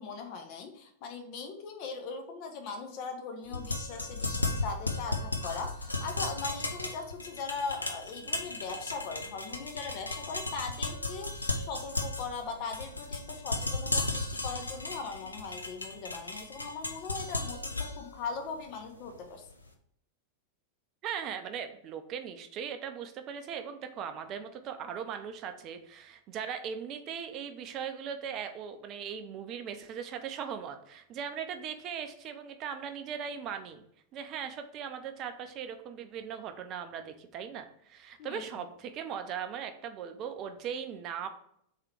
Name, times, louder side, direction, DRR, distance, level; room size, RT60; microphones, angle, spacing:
voice 1, 0.0-19.4 38.2-38.4, left 5 dB, 45° left, 4 dB, 0.7 m, -40 dB
sound 1, 3.5-19.5, left 2 dB, 80° left, 0.5 m, -35 dB
voice 2, 21.0-33.8 34.1-41.3, right 7 dB, 35° right, 7 dB, 0.5 m, -39 dB
3.7 x 3.3 x 4.4 m, 0.71 s
figure-of-eight pair, 90°, 0 cm